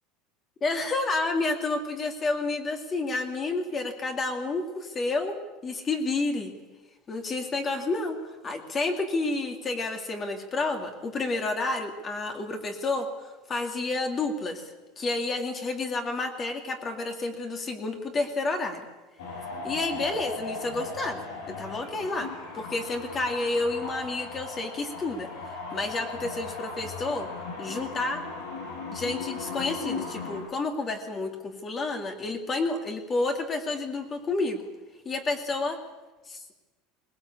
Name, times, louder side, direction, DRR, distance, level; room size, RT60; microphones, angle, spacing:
voice 1, 0.6-5.3 5.6-6.5 7.1-14.7 15.0-18.9 19.6-21.2 21.5-27.3 27.6-28.2 28.7-34.6 35.0-35.8 36.3-36.5, left 3 dB, 20° left, 5 dB, 2.3 m, -30 dB
sound 1, 19.2-30.4, left 4 dB, 85° left, 6.4 m, -37 dB
20.5 x 19.5 x 8.5 m, 1.2 s
cardioid pair, 160°, 0 cm